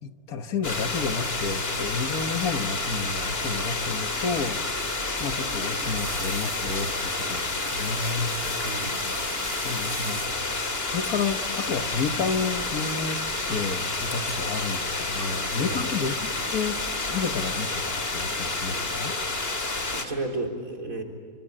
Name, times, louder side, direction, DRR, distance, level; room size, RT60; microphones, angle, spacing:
voice 1, 0.0-8.4 9.6-16.8 17.1-19.2, left 5 dB, 80° left, 10 dB, 1.8 m, -31 dB
sound 1, 0.6-20.1, left 2 dB, 40° left, 2.7 m, -29 dB
sound 2, 5.1-10.6 11.6-11.9 12.2-12.5 13.7-14.3 14.6-15.2 15.6-16.0 16.4-16.5, right 1 dB, 10° right, 1.1 m, -42 dB
voice 2, 8.6-9.0 15.6-15.8 19.9-21.0, right 2 dB, 65° right, 4 dB, 4.3 m, -32 dB
Shatter, 11.0-12.0 14.3-15.3, left 1 dB, 15° left, 5.0 m, -50 dB
26.0 x 25.5 x 8.8 m, 2.1 s
omnidirectional pair, 1.5 m